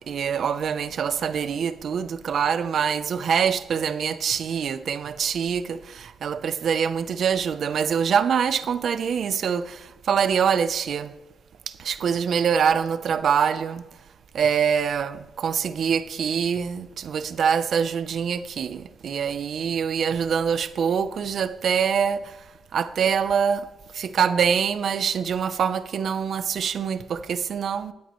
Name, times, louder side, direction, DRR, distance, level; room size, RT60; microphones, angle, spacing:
voice 1, 0.1-11.1 11.8-13.8 14.3-22.2 22.7-23.7 23.9-27.9, right 7 dB, 60° right, 0.6 m, -24 dB
22.0 x 8.6 x 3.1 m
cardioid pair, 105°, 0 cm